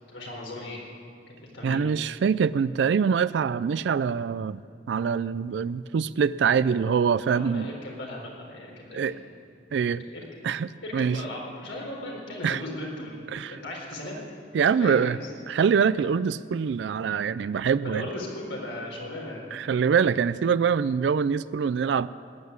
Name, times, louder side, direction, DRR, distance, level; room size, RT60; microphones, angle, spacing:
voice 1, 0.1-0.8 1.3-1.9 7.3-9.2 10.1-10.5 10.8-14.2 14.6-15.3 17.8-19.5, left 1 dB, 90° left, -2 dB, 4.2 m, -37 dB
voice 2, 1.6-4.6 4.9-7.7 8.9-9.1 9.7-10.0 10.4-11.2 12.4-12.6 13.3-13.6 14.5-15.2 15.5-18.0 19.5-22.1, right 6 dB, 70° right, 15 dB, 0.3 m, -24 dB
15.0 x 9.4 x 9.6 m, 2.4 s
head